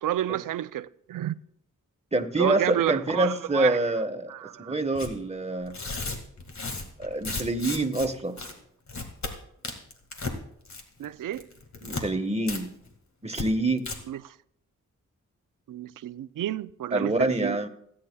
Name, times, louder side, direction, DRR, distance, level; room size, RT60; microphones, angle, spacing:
voice 1, 0.0-1.3 2.4-3.8 4.3-4.7 11.0-11.5 14.1-14.4 15.7-17.7, right 12 dB, 85° right, 0.5 m, -30 dB
voice 2, 2.1-4.3 4.6-5.8 7.0-8.4 11.8-12.7 13.2-13.8 16.9-17.7, right 2 dB, 20° right, 1.3 m, -26 dB
Tearing, 5.0-5.1 5.7-8.1 8.4-8.5 8.9-9.3 9.6-10.4 10.7-11.0 11.3-12.0 12.5-12.6 12.9-13.0 13.3-13.5 13.8-14.0, left 3 dB, 60° left, 2.0 m, -34 dB
29.0 x 9.7 x 2.3 m
cardioid pair, 60°, 31 cm